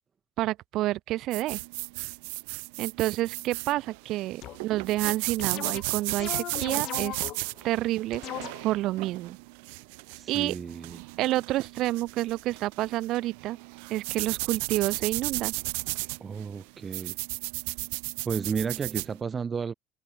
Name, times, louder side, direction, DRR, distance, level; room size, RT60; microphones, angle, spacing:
voice 1, 0.4-1.6 2.8-7.2 7.6-9.4 10.3-10.5 11.2-13.6 13.9-15.5, right 16 dB, 65° right, 2.3 m, -29 dB
sound 1, 1.3-19.1, right 34 dB, 85° right, 1.5 m, -35 dB
sound 2, 4.4-4.7 5.0-7.6 8.1-8.9, left 14 dB, 60° left, 1.1 m, -38 dB
voice 2, 10.1-11.0 16.2-17.2 18.2-19.7, right 6 dB, 30° right, 1.2 m, -32 dB
supercardioid pair, 100°, 0 cm